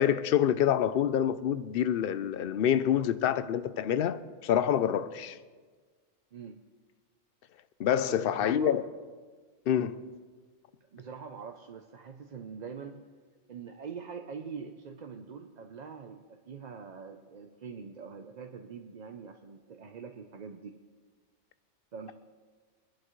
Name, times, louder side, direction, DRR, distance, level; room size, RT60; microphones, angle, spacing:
voice 1, 0.0-5.4 7.8-8.8 9.7-10.0, left 9 dB, 60° left, 0.7 m, -27 dB
voice 2, 6.3-6.6 8.0-8.8 10.9-13.0 13.5-20.8 21.9-22.1, right 6 dB, 45° right, 0.7 m, -44 dB
24.0 x 11.5 x 3.1 m
omnidirectional pair, 1.2 m